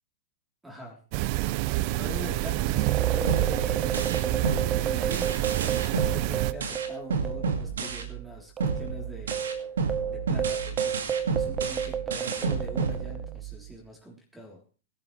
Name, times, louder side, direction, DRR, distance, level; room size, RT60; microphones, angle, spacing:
voice 1, 0.6-1.0 1.8-5.3 6.0-9.4 10.1-14.6, equal, 5° right, 0 dB, 3.8 m, -43 dB
sound 1, 1.1-6.5, right 18 dB, 45° right, 0.6 m, -27 dB
sound 2, 2.7-7.6 7.8-8.0 8.6-13.3, right 8 dB, 25° right, 1.2 m, -32 dB
sound 3, 3.3-8.3 8.6-13.6, right 5 dB, 75° right, 2.3 m, -31 dB
18.0 x 12.0 x 3.4 m, 0.37 s
hypercardioid pair, 105°, 0 cm